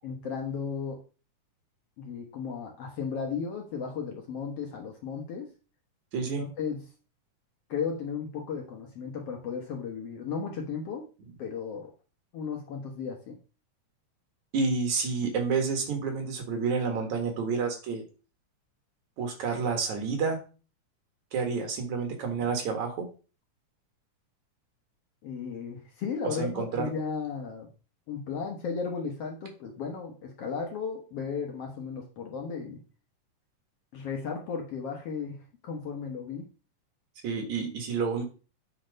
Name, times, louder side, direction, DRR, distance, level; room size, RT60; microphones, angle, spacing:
voice 1, 0.0-1.0 2.0-5.5 6.2-6.8 7.7-11.1 11.4-11.9 12.3-13.4 25.2-27.7 28.1-32.8 33.9-36.5, left 6 dB, 60° left, 2 dB, 1.7 m, -35 dB
voice 2, 6.1-6.4 14.5-18.0 19.2-20.4 21.3-23.1 26.2-26.9 37.2-38.2, right 5 dB, 65° right, 4 dB, 2.9 m, -29 dB
8.6 x 4.4 x 5.1 m, 0.35 s
omnidirectional pair, 3.7 m